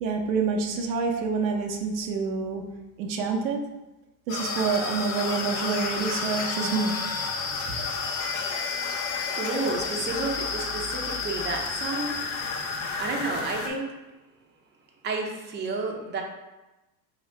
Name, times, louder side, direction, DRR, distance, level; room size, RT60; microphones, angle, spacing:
voice 1, 0.0-2.7 3.0-3.6 4.3-7.0, right 5 dB, 85° right, 2 dB, 0.7 m, -27 dB
sound 1, 4.3-13.7, left 4 dB, 55° left, 0.9 m, -31 dB
voice 2, 9.4-12.3 13.0-13.9 15.0-16.2, right 3 dB, 20° right, 0 dB, 0.6 m, -31 dB
3.9 x 2.9 x 3.2 m, 1.0 s
hypercardioid pair, 90°, 49 cm